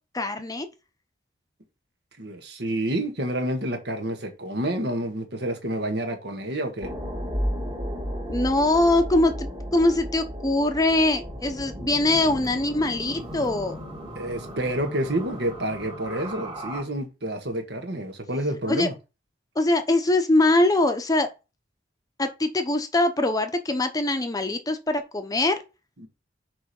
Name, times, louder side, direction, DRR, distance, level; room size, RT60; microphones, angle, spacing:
voice 1, 0.1-0.7 8.3-13.8 18.7-18.9 19.6-21.3 22.2-25.6, left 2 dB, 20° left, 0.8 m, -22 dB
voice 2, 2.2-6.9 14.1-18.9 26.0-26.1, right 1 dB, 60° right, 1.7 m, -29 dB
sound 1, 6.8-16.8, equal, 25° right, 2.1 m, -34 dB
6.2 x 5.0 x 4.3 m
head